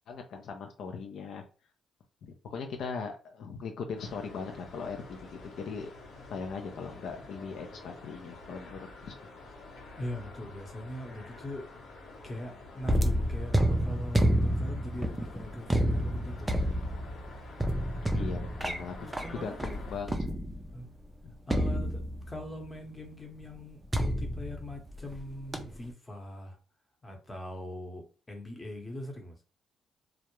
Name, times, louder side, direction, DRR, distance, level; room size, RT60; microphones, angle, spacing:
voice 1, 0.1-1.4 2.2-5.9 6.3-9.2 18.1-20.3 21.2-21.4, left 5 dB, 70° left, 0.4 m, -39 dB
sound 1, 4.0-20.0, left 2 dB, 85° left, 1.0 m, -49 dB
voice 2, 10.0-11.7 12.2-16.5 20.7-20.9 21.5-22.0 22.3-26.6 27.0-29.4, left 1 dB, 20° left, 0.8 m, -41 dB
sound 2, 12.8-20.8 21.5-22.5 23.9-25.2 25.5-25.9, equal, 15° right, 0.4 m, -29 dB
2.3 x 2.0 x 3.0 m
cardioid pair, 90°, 0 cm